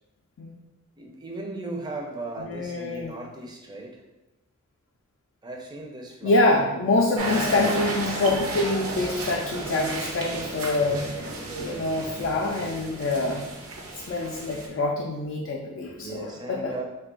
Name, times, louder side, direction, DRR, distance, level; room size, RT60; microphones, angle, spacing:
voice 1, 1.0-4.0 5.4-6.4 15.9-16.8, right 2 dB, 20° right, 0 dB, 0.4 m, -37 dB
voice 2, 2.4-3.1 6.2-11.1 11.6-13.5 14.1-16.7, left 2 dB, 60° left, -1 dB, 0.3 m, -25 dB
sound 1, 7.2-14.7, right 2 dB, 75° right, 0.6 m, -33 dB
3.1 x 2.2 x 3.7 m, 0.99 s
head